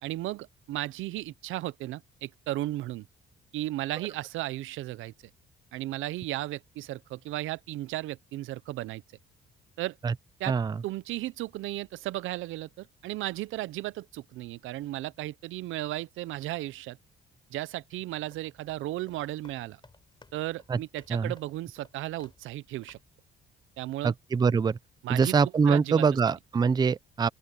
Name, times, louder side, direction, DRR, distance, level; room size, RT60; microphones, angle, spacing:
voice 1, 0.0-3.1 3.5-5.1 5.7-9.0 9.8-10.0 10.4-10.5 10.8-17.0 17.5-19.8 20.3-23.0 23.8-24.1 25.0-25.3 25.7-26.0, right 16 dB, 85° right, 0.6 m, -35 dB
voice 2, 10.5-10.8 20.7-20.8 21.1-21.3 24.0-24.8 25.1-27.3, right 5 dB, 20° right, 0.4 m, -24 dB
sound 1, 18.2-22.6 22.8-23.2, left 3 dB, 25° left, 3.6 m, -59 dB
open air
cardioid pair, 90°, 20 cm